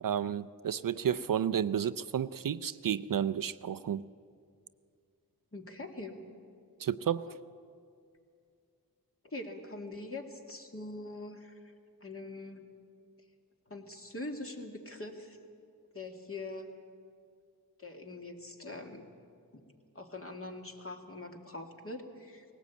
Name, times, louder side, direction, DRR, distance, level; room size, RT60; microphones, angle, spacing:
voice 1, 0.0-4.0 6.8-7.3, right 9 dB, 60° right, 14 dB, 0.5 m, -31 dB
voice 2, 5.5-6.2 7.3-7.4 9.3-11.7 12.0-12.7 13.7-15.4 15.9-16.7 17.8-19.1 19.5-19.7 19.9-22.5, left 2 dB, 35° left, 3 dB, 2.2 m, -43 dB
19.0 x 17.5 x 8.4 m, 2.3 s
wide cardioid pair, 70°, 38 cm